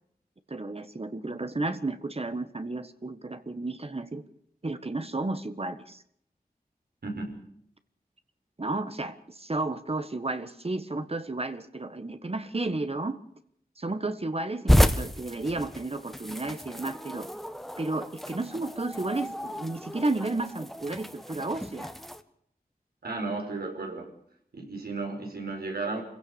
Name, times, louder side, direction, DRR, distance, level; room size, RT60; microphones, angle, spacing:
voice 1, 0.5-4.2 4.6-6.0 8.6-13.2 13.8-17.3 17.8-21.9, right 2 dB, 40° right, 10 dB, 1.5 m, -32 dB
voice 2, 7.0-7.4 23.0-24.1 24.5-26.0, right 3 dB, 85° right, 2 dB, 5.3 m, -34 dB
sound 1, 14.7-22.2, equal, ahead, 1.5 m, -30 dB
26.0 x 16.5 x 7.0 m, 0.69 s
wide cardioid pair, 60°, 16 cm